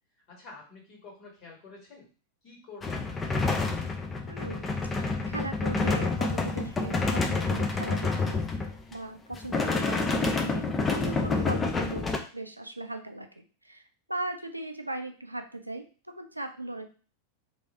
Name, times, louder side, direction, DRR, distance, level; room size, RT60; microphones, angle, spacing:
voice 1, 0.3-2.1 2.4-3.7, left 3 dB, 40° left, -1 dB, 2.0 m, -49 dB
sound 1, 2.8-8.9 9.3-12.2, left 3 dB, 15° left, 0.6 m, -28 dB
voice 2, 4.3-8.5 8.9-12.1 12.3-13.8 14.1-15.8 16.2-16.9, right 2 dB, 85° right, 6 dB, 0.4 m, -38 dB
3.3 x 2.6 x 4.3 m, 0.37 s
figure-of-eight pair, 90°, 0 cm